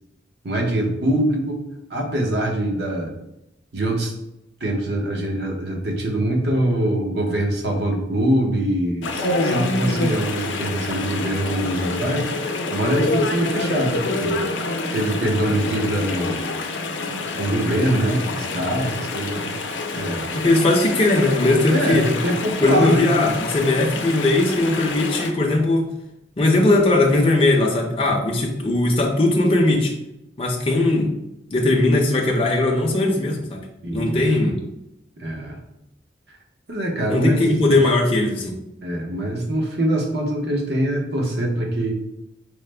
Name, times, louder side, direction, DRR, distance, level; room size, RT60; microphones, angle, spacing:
voice 1, 0.4-1.6 1.9-3.1 3.7-4.1 4.6-14.3 14.9-16.3 17.3-19.5 19.9-20.3 21.7-23.1 33.8-34.2 35.2-35.6 36.7-37.4 38.8-41.9, right 1 dB, 60° right, 0 dB, 0.8 m, -23 dB
Chatter / Stream, 9.0-25.3, left 3 dB, 80° left, 0.5 m, -27 dB
voice 2, 20.3-22.1 22.6-25.9 26.4-29.9 30.4-31.1 31.5-33.6 33.9-34.5 37.1-38.6, left 2 dB, 30° left, 0 dB, 0.5 m, -19 dB
4.7 x 2.1 x 3.2 m, 0.87 s
head